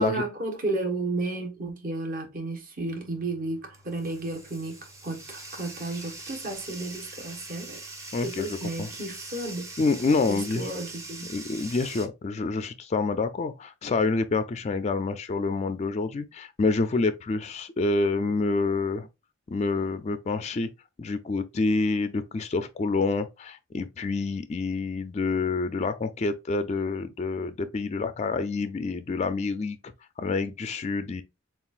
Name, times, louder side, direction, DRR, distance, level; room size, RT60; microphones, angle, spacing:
voice 1, 0.0-7.8 8.2-9.7 10.3-11.3, right 2 dB, 45° right, 1.2 m, -33 dB
Bathtub (filling or washing), 2.9-12.1, right 2 dB, 15° right, 0.8 m, -43 dB
voice 2, 8.1-8.5 8.8-8.9 9.8-10.7 11.3-19.1 19.5-20.7 21.0-29.8 30.2-31.2, left 3 dB, 35° left, 0.3 m, -27 dB
7.0 x 2.4 x 2.4 m
head